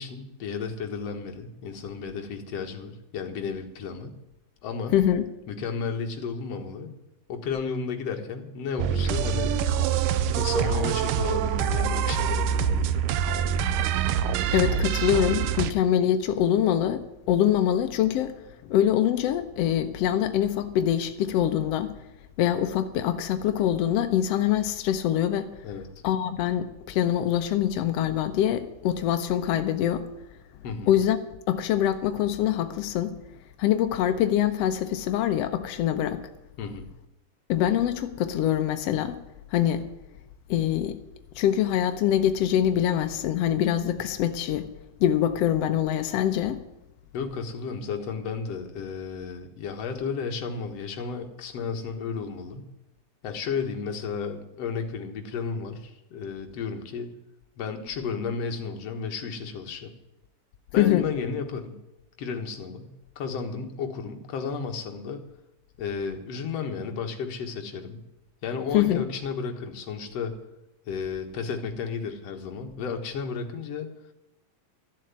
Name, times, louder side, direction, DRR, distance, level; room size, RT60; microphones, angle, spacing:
voice 1, 0.0-4.2 4.6-5.0 5.5-6.9 7.3-9.6 10.3-12.9 25.6-25.9 30.6-30.9 36.6-36.9 47.1-52.7 53.2-57.1 57.6-59.9 60.7-61.8 62.2-65.2 65.8-68.0 68.4-70.4 70.9-73.9, left 5 dB, 55° left, 2.3 m, -33 dB
voice 2, 4.9-5.2 14.5-17.0 17.3-18.3 18.6-21.9 22.4-25.6 26.0-30.1 30.9-31.2 31.5-33.1 33.6-36.2 37.5-39.2 39.5-39.9 40.5-41.0 41.3-44.7 45.0-46.6 60.8-61.1 68.7-69.0, left 10 dB, 80° left, 1.4 m, -24 dB
sound 1, 8.8-15.7, right 8 dB, 80° right, 2.3 m, -25 dB
13.5 x 7.6 x 9.5 m
omnidirectional pair, 3.9 m